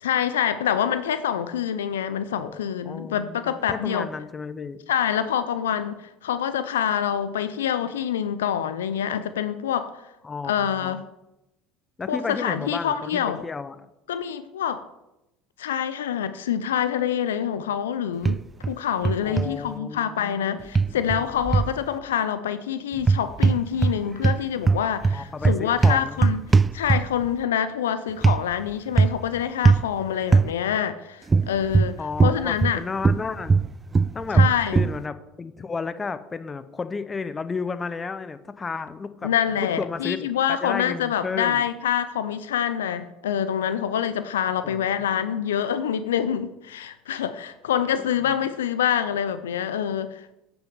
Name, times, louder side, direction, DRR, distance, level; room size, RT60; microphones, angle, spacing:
voice 1, 0.0-4.1 4.9-10.0 10.4-11.0 12.1-13.4 14.1-14.8 15.6-18.4 18.7-26.4 26.7-32.8 34.3-34.8 39.2-50.3, left 9 dB, 85° left, 0.4 m, -26 dB
voice 2, 2.9-4.8 10.2-11.0 12.0-13.8 19.2-20.6 20.9-21.3 25.1-26.2 32.0-33.6 34.1-34.4 34.7-39.3 39.6-41.7 44.6-44.9 48.0-48.1, left 4 dB, 25° left, 0.7 m, -33 dB
sound 1, 18.3-18.7 19.1-19.5 20.8-21.8 23.0-24.0 24.2-27.3 28.2-28.4 29.0-29.3 29.7-29.9 30.3-30.5 31.3-32.8 33.0-35.0, right 4 dB, 25° right, 0.3 m, -19 dB
8.9 x 6.0 x 5.4 m
hypercardioid pair, 75°, 0 cm